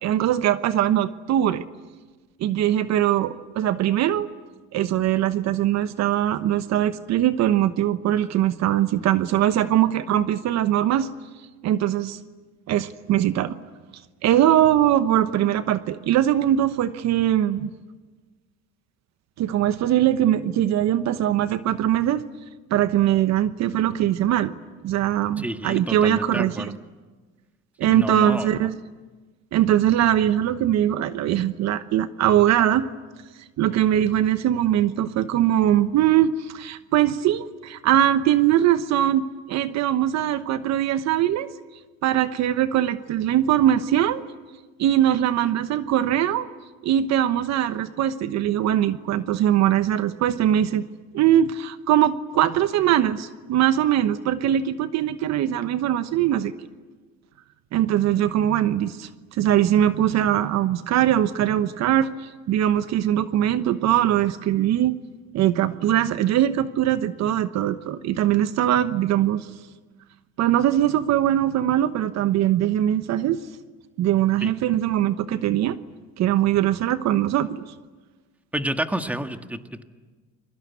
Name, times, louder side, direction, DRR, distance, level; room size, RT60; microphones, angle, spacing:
voice 1, 0.0-1.6 2.4-4.3 4.7-11.1 11.6-12.2 12.7-13.6 14.2-17.7 19.4-22.2 22.7-24.5 24.8-26.7 27.8-28.7 29.5-32.9 33.6-41.5 42.0-44.2 44.8-46.5 46.8-50.8 51.1-56.5 57.7-65.0 65.3-69.5 70.4-73.4 74.0-75.8 76.2-77.5, right 11 dB, 60° right, 12 dB, 1.1 m, -21 dB
voice 2, 25.4-26.8 27.8-28.7 74.4-74.5 78.5-79.8, right 1 dB, 5° right, 7 dB, 1.7 m, -29 dB
29.5 x 23.0 x 8.3 m, 1.3 s
supercardioid pair, 95°, 31 cm